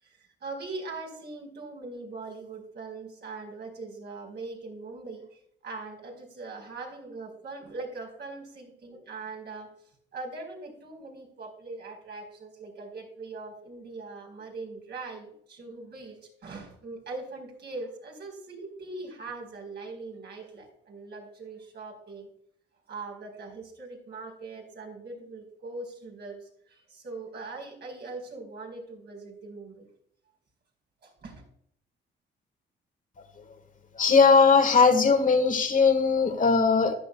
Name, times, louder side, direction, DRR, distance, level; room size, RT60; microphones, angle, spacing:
voice 1, 0.0-9.7 10.1-22.3 22.9-29.9 31.0-31.4, right 3 dB, 55° right, 0 dB, 4.7 m, -41 dB
voice 2, 34.0-36.9, left 5 dB, 40° left, 7 dB, 1.7 m, -19 dB
14.0 x 10.5 x 2.3 m, 0.70 s
cardioid pair, 90°, 20 cm